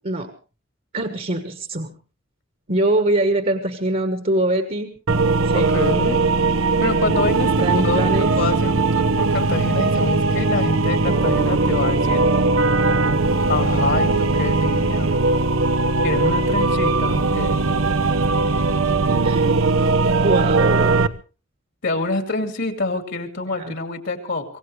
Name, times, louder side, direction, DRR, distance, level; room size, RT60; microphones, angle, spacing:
voice 1, 0.9-1.9 2.7-4.9 5.4-5.7 7.6-8.3 19.2-21.1 23.6-23.7, right 1 dB, 40° right, 7 dB, 1.4 m, -23 dB
sound 1, 5.1-21.1, right 3 dB, 85° right, 0.9 m, -19 dB
voice 2, 5.5-6.2 6.8-8.1 8.4-12.2 13.5-15.1 16.0-17.6 21.8-24.4, left 3 dB, 60° left, 6 dB, 2.6 m, -26 dB
25.0 x 17.0 x 3.3 m, 0.35 s
head